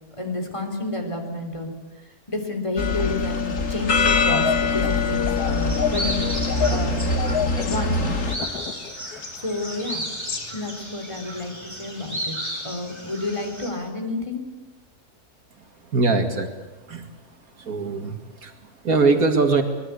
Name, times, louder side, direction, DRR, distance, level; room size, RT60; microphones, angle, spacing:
voice 1, 0.2-1.7 2.0-6.3 6.7-7.1 7.6-8.4 9.4-10.0 10.5-12.4 12.6-14.4, left 2 dB, 20° left, 4 dB, 3.6 m, -30 dB
sound 1, 2.8-8.4, left 4 dB, 55° left, 2.4 m, -23 dB
sound 2, 4.3-9.8 10.0-10.5, left 8 dB, 90° left, 1.7 m, -31 dB
sound 3, 5.4-13.7, right 1 dB, 15° right, 5.1 m, -34 dB
voice 2, 15.6-17.1 17.5-19.6, right 3 dB, 70° right, 6 dB, 2.4 m, -23 dB
24.5 x 21.0 x 8.2 m, 1.1 s
omnidirectional pair, 1.6 m